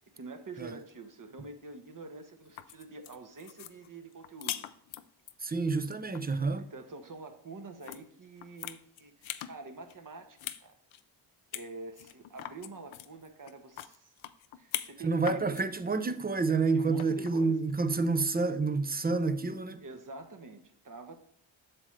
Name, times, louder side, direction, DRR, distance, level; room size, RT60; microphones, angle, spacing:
voice 1, 0.1-4.7 6.6-10.8 11.5-14.1 14.6-15.6 16.7-17.6 19.8-21.2, right 3 dB, 40° right, 1.1 m, -46 dB
sound 1, 2.4-5.3 5.8-6.2 7.8-8.0 8.4-9.5 9.9-10.6 10.9-11.0 11.5-11.7 12.0-15.0 15.2-15.6 17.0-17.4, left 12 dB, 70° left, 0.6 m, -41 dB
voice 2, 5.4-6.6 15.0-19.8, right 4 dB, 20° right, 0.6 m, -29 dB
7.5 x 6.4 x 3.2 m
cardioid pair, 60°, 49 cm